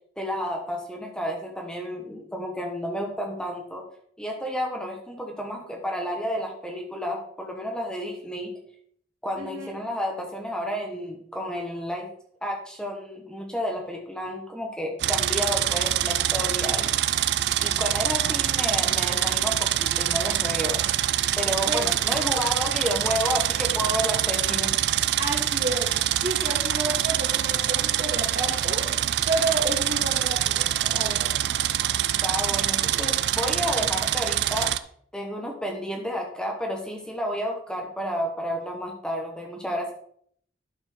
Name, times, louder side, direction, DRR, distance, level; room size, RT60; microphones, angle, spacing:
voice 1, 0.2-3.8 4.2-8.5 9.2-12.1 12.4-20.8 21.4-24.7 32.2-34.7 35.1-39.9, equal, 5° left, 1 dB, 1.1 m, -31 dB
voice 2, 9.4-9.7 21.7-21.9 25.2-28.9 29.2-31.4, right 2 dB, 50° right, -3 dB, 2.7 m, -31 dB
sound 1, 15.0-34.8, right 12 dB, 70° right, 0.4 m, -25 dB
12.0 x 4.4 x 4.2 m, 0.62 s
head